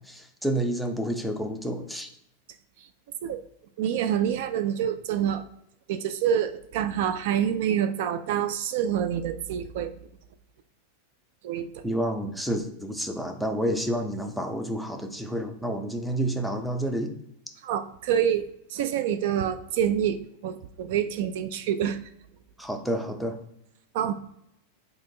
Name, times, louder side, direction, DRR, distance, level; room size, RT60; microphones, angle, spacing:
voice 1, 0.0-2.1 11.8-17.1 22.6-23.4, right 1 dB, ahead, 5 dB, 0.5 m, -29 dB
voice 2, 3.8-5.4 5.9-9.9 11.4-11.8 17.6-22.0 23.9-24.1, right 9 dB, 65° right, 11 dB, 0.3 m, -27 dB
3.5 x 2.2 x 3.8 m, 0.78 s
hypercardioid pair, 125°, 0 cm